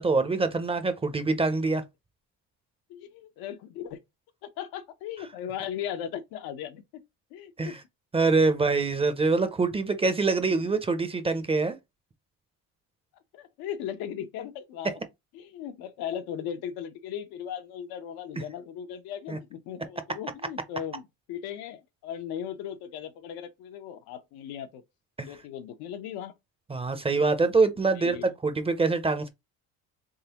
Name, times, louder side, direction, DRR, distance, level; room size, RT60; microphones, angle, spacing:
voice 1, 0.0-1.8 7.6-7.8 8.1-11.8 19.3-19.4 25.2-25.3 26.7-29.3, right 3 dB, 15° right, 0.5 m, -25 dB
voice 2, 2.9-4.0 4.4-7.0 7.3-7.8 10.3-10.7 13.3-14.9 15.3-24.8 25.2-26.3 28.0-28.3, left 9 dB, 90° left, 0.8 m, -37 dB
3.8 x 3.5 x 2.8 m
cardioid pair, 130°, 36 cm